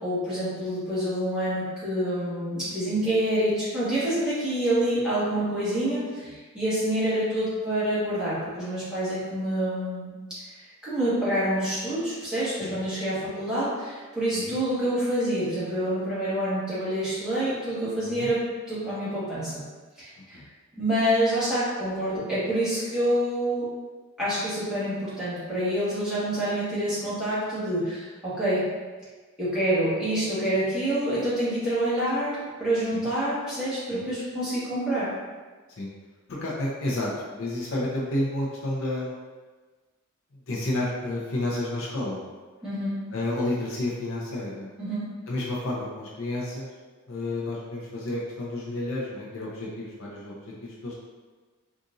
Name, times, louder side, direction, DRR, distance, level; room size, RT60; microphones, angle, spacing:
voice 1, 0.0-10.1 10.8-19.6 20.0-20.4 20.8-23.6 24.2-28.7 29.4-35.1 42.6-43.0 44.8-45.1, right 1 dB, 5° right, -13 dB, 1.3 m, -27 dB
voice 2, 36.4-39.1 40.5-42.2 43.1-44.7 45.3-46.7 47.1-50.3 50.6-51.0, left 1 dB, 60° left, -5 dB, 0.6 m, -30 dB
3.8 x 2.5 x 2.6 m, 1.3 s
head